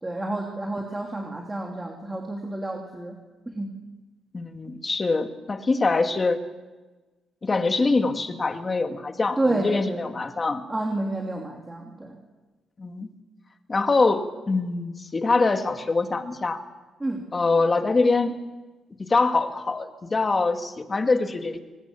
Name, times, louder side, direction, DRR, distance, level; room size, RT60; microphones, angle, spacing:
voice 1, 0.0-3.2 3.5-3.7 9.4-10.1 10.7-12.2 17.0-17.2, right 2 dB, 15° right, 1 dB, 3.0 m, -29 dB
voice 2, 4.3-6.4 7.4-10.7 12.8-13.1 13.7-16.6 17.3-18.3 19.0-21.6, left 3 dB, 30° left, 6 dB, 2.1 m, -24 dB
24.5 x 19.5 x 7.1 m, 1.2 s
cardioid pair, 90°, 0 cm